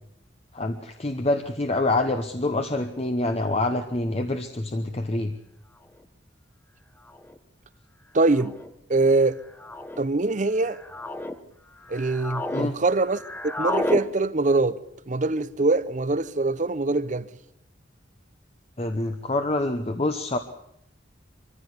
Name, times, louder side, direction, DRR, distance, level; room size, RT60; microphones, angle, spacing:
voice 1, 0.5-5.3 12.5-12.7 18.8-20.4, left 2 dB, 35° left, 1.0 m, -26 dB
sound 1, 6.0-6.1 7.1-7.4 8.3-8.7 9.6-10.0 10.6-11.4 11.8-12.7 13.0-14.0, left 2 dB, 10° left, 1.0 m, -31 dB
voice 2, 8.1-8.5 8.9-9.4 10.0-10.8 11.9-14.8 15.1-17.3, right 3 dB, 40° right, 0.8 m, -23 dB
23.5 x 15.0 x 8.2 m
head